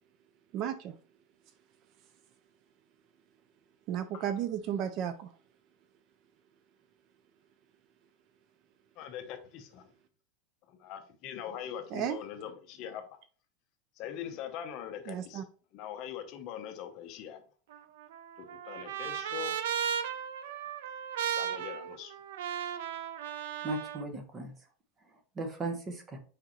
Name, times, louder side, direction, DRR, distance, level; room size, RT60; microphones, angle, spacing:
voice 1, 0.5-1.0 3.9-5.4 11.9-12.2 15.1-15.4, right 9 dB, 35° right, 0.4 m, -34 dB
voice 2, 9.0-9.9 10.7-13.2 14.0-15.4 15.7-17.4 18.4-19.6 21.3-22.1, left 9 dB, 40° left, 0.9 m, -42 dB
Trumpet, 17.7-24.0, right 9 dB, 80° right, 0.6 m, -36 dB
voice 3, 23.6-24.5 25.1-26.2, right 2 dB, 20° right, 1.0 m, -37 dB
6.5 x 4.9 x 3.1 m
supercardioid pair, 175°, 0 cm